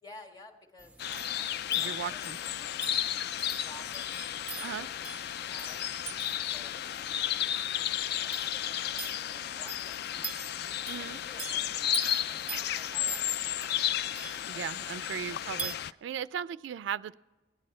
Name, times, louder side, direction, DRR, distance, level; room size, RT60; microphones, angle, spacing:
voice 1, 0.0-2.8 3.6-4.2 4.6-5.0 5.5-5.8 6.4-6.9 8.2-10.0 10.9-14.7 15.1-15.6, left 2 dB, 25° left, 2 dB, 1.6 m, -53 dB
sound 1, 0.8-15.8, right 5 dB, 10° right, 0.4 m, -45 dB
sound 2, 1.0-15.9, left 11 dB, 60° left, 0.3 m, -33 dB
voice 2, 1.8-2.4 4.6-4.9 10.9-11.2 14.5-15.7 16.0-17.1, right 8 dB, 80° right, 17 dB, 0.3 m, -37 dB
17.5 x 10.5 x 4.2 m, 1.2 s
head